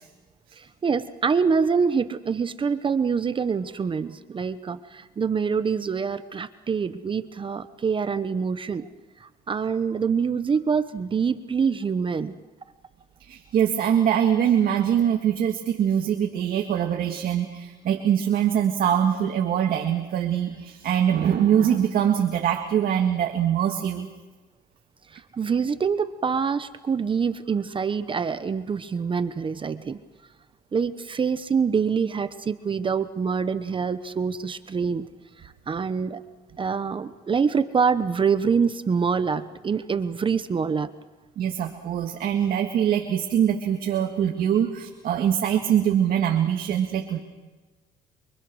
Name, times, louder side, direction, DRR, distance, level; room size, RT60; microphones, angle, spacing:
voice 1, 0.5-8.9 9.2-12.4 25.1-30.0 30.7-35.1 35.4-36.2 36.6-40.9, right 6 dB, 30° right, 12 dB, 1.0 m, -25 dB
voice 2, 13.2-24.1 41.4-47.2, right 9 dB, 60° right, 3 dB, 2.1 m, -23 dB
28.5 x 24.5 x 6.4 m, 1.2 s
cardioid pair, 110°, 17 cm